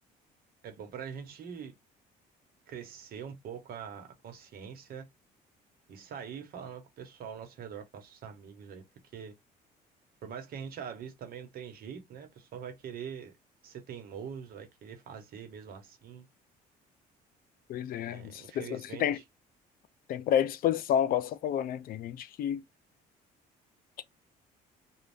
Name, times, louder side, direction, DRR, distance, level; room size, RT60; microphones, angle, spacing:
voice 1, 0.6-1.7 2.7-5.1 5.9-8.8 9.1-9.3 10.2-13.3 13.6-16.3 18.1-19.2, right 7 dB, 60° right, 1.0 m, -43 dB
voice 2, 17.7-19.2 20.1-22.6, left 10 dB, 60° left, 0.5 m, -30 dB
2.6 x 2.3 x 3.3 m
cardioid pair, 110°, 17 cm